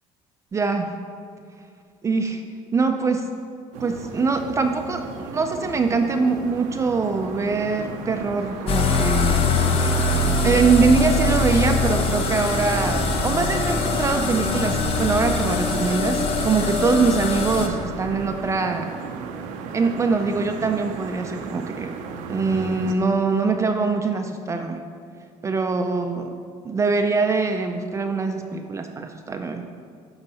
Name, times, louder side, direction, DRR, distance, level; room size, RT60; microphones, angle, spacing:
voice 1, 0.5-1.0 2.0-2.4 2.7-3.3 3.8-9.6 10.4-18.9 19.7-21.9 22.3-24.8 25.4-26.3 26.6-29.7, right 4 dB, 25° right, 5 dB, 0.4 m, -23 dB
sound 1, 3.7-22.9, right 5 dB, 90° right, 0.7 m, -34 dB
sound 2, 8.7-17.7, left 3 dB, 50° left, 0.8 m, -23 dB
9.8 x 3.9 x 5.5 m, 2.3 s
cardioid pair, 125°, 13 cm